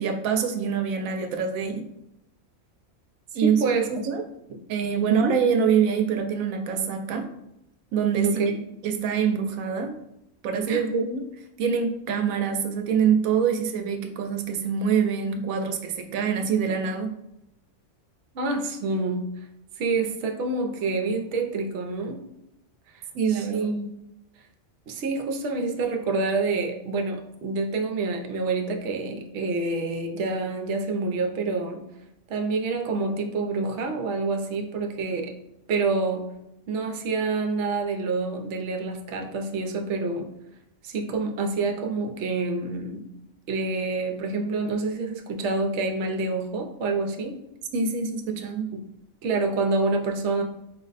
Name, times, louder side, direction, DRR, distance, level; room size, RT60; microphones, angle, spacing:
voice 1, 0.0-1.9 3.3-3.6 3.9-4.2 4.7-7.3 7.9-8.4 8.8-9.9 10.4-11.2 11.6-17.1 23.1-23.7 47.7-48.7, right 7 dB, 90° right, 4 dB, 1.0 m, -25 dB
voice 2, 3.4-3.9 4.5-4.6 5.1-5.4 8.2-8.5 10.7-10.8 18.3-19.3 19.8-22.2 23.3-23.9 24.9-31.8 32.3-35.3 35.7-36.3 36.7-40.3 40.8-43.1 43.5-47.4 48.7-48.8 49.2-50.4, right 3 dB, 65° right, 3 dB, 0.9 m, -27 dB
4.7 x 2.1 x 4.0 m, 0.84 s
omnidirectional pair, 1.4 m